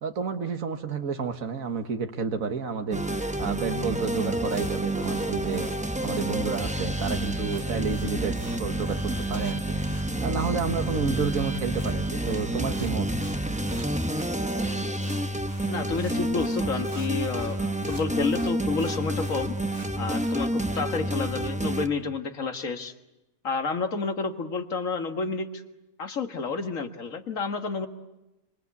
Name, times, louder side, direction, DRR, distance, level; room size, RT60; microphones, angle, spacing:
voice 1, 0.0-5.7 6.0-9.8 10.2-13.1 16.9-17.1 17.6-17.7, right 5 dB, 80° right, 6 dB, 1.9 m, -30 dB
sound 1, 2.9-21.9, right 1 dB, 5° right, 0.9 m, -29 dB
sound 2, 4.5-20.7, right 2 dB, 40° right, 2.6 m, -50 dB
voice 2, 15.7-17.6 17.9-19.6 20.0-22.9 23.4-25.6 26.0-27.9, left 4 dB, 70° left, 6 dB, 2.1 m, -30 dB
26.5 x 25.5 x 8.4 m, 1.0 s
omnidirectional pair, 1.4 m